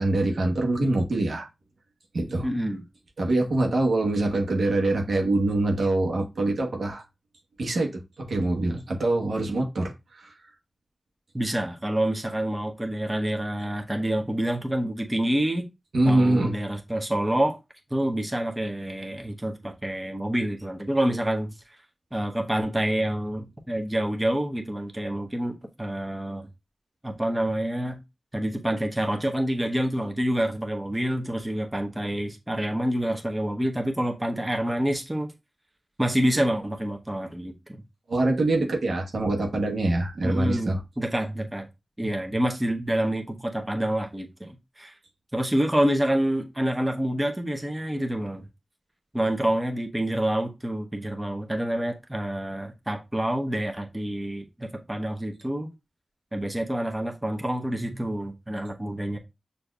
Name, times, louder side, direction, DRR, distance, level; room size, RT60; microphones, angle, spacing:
voice 1, 0.0-1.5 2.1-2.5 3.2-7.0 7.6-10.3 15.9-16.5 38.1-40.8, right 2 dB, 85° right, 1.1 m, -24 dB
voice 2, 2.4-2.8 11.3-15.6 16.0-17.6 17.9-21.5 22.1-26.5 27.0-28.0 28.3-35.3 36.0-37.8 40.2-41.7 42.0-44.9 45.3-48.5 49.1-55.7 56.3-59.2, right 1 dB, 15° right, 0.8 m, -27 dB
6.3 x 2.6 x 2.3 m
wide cardioid pair, 65°, 0 cm